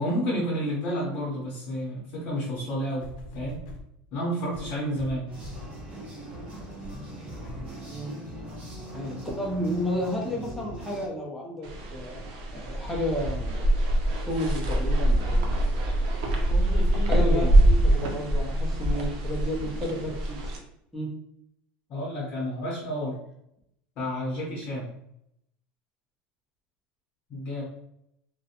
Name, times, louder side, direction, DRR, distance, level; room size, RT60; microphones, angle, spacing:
voice 1, 0.0-3.1 3.3-3.6 4.1-5.3 16.5-17.5 21.9-23.2 24.0-24.9 27.3-27.6, equal, 45° left, -4 dB, 0.7 m, -30 dB
sound 1, 3.0-3.9 4.5-5.8 6.3-6.4 6.8-7.0 7.4-7.8 8.5-8.6, left 1 dB, 85° left, 0.6 m, -42 dB
sound 2, 5.3-11.1, right 1 dB, 35° right, 0.8 m, -40 dB
voice 2, 7.9-8.2 8.9-12.2 12.5-13.7 14.3-15.6 17.1-20.5 20.9-21.1, equal, ahead, -3 dB, 0.5 m, -32 dB
sound 3, 11.6-20.6, right 1 dB, 75° right, 0.6 m, -24 dB
2.5 x 2.1 x 2.7 m, 0.76 s
cardioid pair, 165°, 4 cm